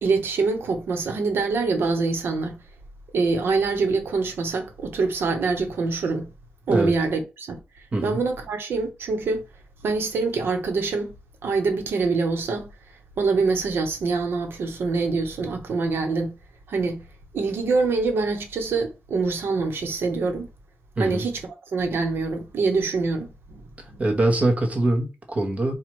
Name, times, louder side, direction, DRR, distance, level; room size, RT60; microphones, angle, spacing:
voice 1, 0.0-2.6 3.1-6.3 6.7-7.6 8.0-9.4 9.8-11.1 11.4-12.7 13.2-16.3 16.7-17.0 17.3-20.5 21.0-21.3 21.7-23.3, right 4 dB, 85° right, 1.1 m, -24 dB
voice 2, 24.0-25.7, right 2 dB, 40° right, 1.1 m, -23 dB
4.3 x 2.4 x 4.6 m
wide cardioid pair, 145°, 4 cm